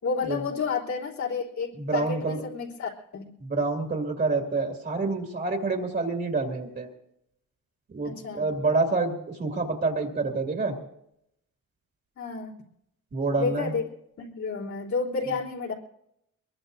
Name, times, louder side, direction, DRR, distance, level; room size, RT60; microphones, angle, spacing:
voice 1, 0.0-3.3 8.0-8.5 12.2-12.5 13.4-13.8 14.2-15.7, left 4 dB, 65° left, -5 dB, 3.5 m, -31 dB
voice 2, 1.8-2.4 3.4-6.9 7.9-10.7 13.1-13.7, right 3 dB, 35° right, 2 dB, 2.3 m, -27 dB
23.0 x 22.0 x 2.7 m, 0.78 s
cardioid pair, 130°, 31 cm